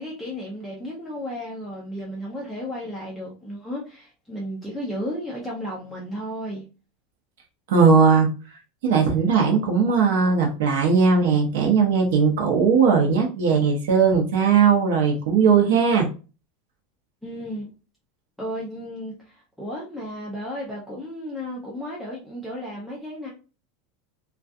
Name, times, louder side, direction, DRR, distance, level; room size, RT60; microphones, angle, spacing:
voice 1, 0.0-6.6 17.2-17.7 18.4-23.3, equal, ahead, 0.5 m, -33 dB
voice 2, 7.7-8.3 8.8-16.1, right 5 dB, 75° right, 0.6 m, -18 dB
2.3 x 2.2 x 2.5 m
supercardioid pair, 170°, 0 cm